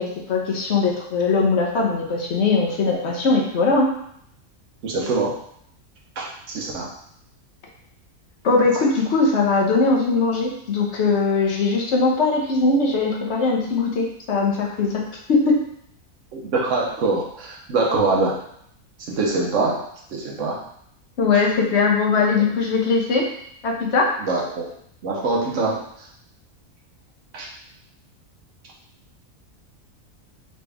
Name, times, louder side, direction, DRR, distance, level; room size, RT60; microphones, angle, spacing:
voice 1, 0.0-3.9 8.4-15.0 15.3-15.6 21.2-23.3 23.6-24.1, left 4 dB, 55° left, -1 dB, 1.1 m, -20 dB
voice 2, 4.8-5.4 6.2-6.9 8.8-8.9 16.3-18.4 19.0-19.9 20.1-20.6 24.2-24.7 25.0-26.1 27.3-27.5, right 3 dB, 65° right, -2 dB, 1.2 m, -24 dB
4.0 x 3.3 x 3.4 m, 0.69 s
omnidirectional pair, 1.5 m